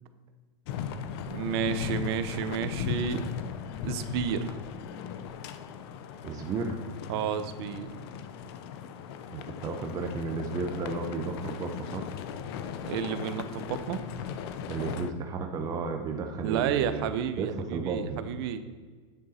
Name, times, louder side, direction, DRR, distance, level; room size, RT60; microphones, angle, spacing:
sound 1, 0.7-15.1, left 7 dB, 55° left, 0.7 m, -38 dB
voice 1, 1.3-3.2 3.8-4.6 7.1-7.9 12.9-14.0 16.4-18.6, right 8 dB, 60° right, 11 dB, 0.8 m, -31 dB
voice 2, 6.2-6.8 9.3-12.0 14.7-17.0 17.4-18.2, right 4 dB, 25° right, 3 dB, 0.9 m, -33 dB
9.4 x 6.8 x 4.3 m, 1.5 s
supercardioid pair, 145°, 15 cm